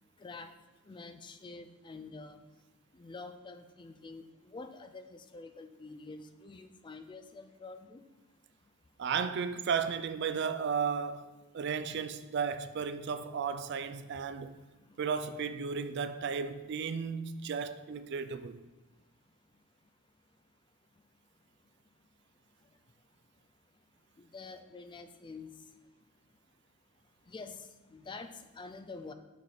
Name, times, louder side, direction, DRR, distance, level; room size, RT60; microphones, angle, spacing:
voice 1, 0.9-2.4 2.9-4.2 4.5-8.0 24.3-25.5 27.3-27.6 27.9-29.1, left 3 dB, 25° left, 0.4 m, -47 dB
voice 2, 9.0-14.6 15.0-18.6, right 6 dB, 55° right, 0.4 m, -34 dB
6.8 x 4.2 x 4.8 m
head